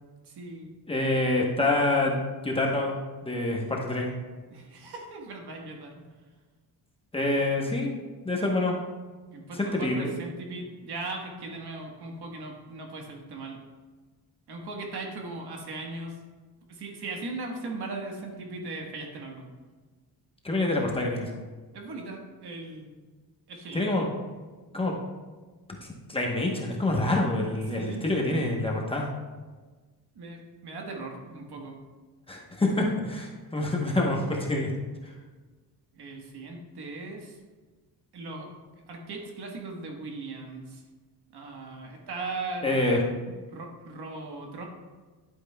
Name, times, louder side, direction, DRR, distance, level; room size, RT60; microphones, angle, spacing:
voice 1, 0.2-0.7 4.5-6.1 9.3-13.6 14.5-16.2 16.7-19.5 21.7-22.9 23.5-23.9 27.7-28.1 30.1-31.8 35.9-37.4 38.1-38.5 38.9-40.8 41.3-44.6, right 3 dB, 65° right, 1 dB, 1.4 m, -38 dB
voice 2, 0.9-3.0 3.2-4.1 7.1-7.9 8.2-8.8 9.6-10.1 20.4-21.3 23.7-24.0 24.7-24.9 26.1-29.1 32.3-34.7 35.0-35.1 42.6-43.0, left 2 dB, 15° left, -2 dB, 0.9 m, -26 dB
10.5 x 8.6 x 2.2 m, 1.3 s
wide cardioid pair, 165°, 41 cm